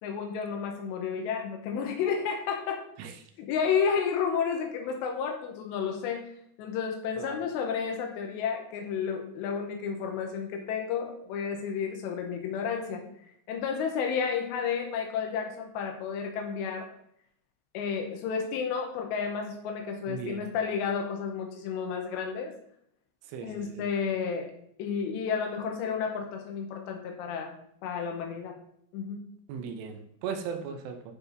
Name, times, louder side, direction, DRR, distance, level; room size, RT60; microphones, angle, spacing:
voice 1, 0.0-2.8 3.4-6.3 6.6-13.0 13.5-16.9 17.7-22.5 23.4-24.5 24.8-28.5 28.9-29.2, left 6 dB, 85° left, 3 dB, 2.9 m, -31 dB
voice 2, 20.1-20.5 23.2-23.9 29.5-31.1, right 6 dB, 80° right, 6 dB, 2.7 m, -38 dB
9.6 x 4.1 x 2.7 m, 0.71 s
omnidirectional pair, 5.1 m